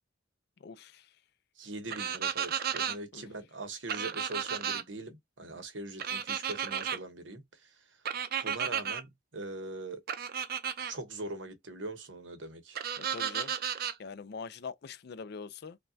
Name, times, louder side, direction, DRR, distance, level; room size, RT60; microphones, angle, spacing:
voice 1, 0.6-1.1 3.1-3.2 13.0-13.5 14.0-15.8, left 5 dB, 60° left, 0.5 m, -43 dB
voice 2, 1.6-8.0 8.4-10.0 10.8-12.8, right 2 dB, 85° right, 1.0 m, -42 dB
sound 1, 1.9-3.0 3.9-4.8 6.0-7.0 8.1-9.0 10.1-10.9 12.8-14.0, right 8 dB, 55° right, 0.5 m, -33 dB
5.2 x 2.2 x 2.7 m
head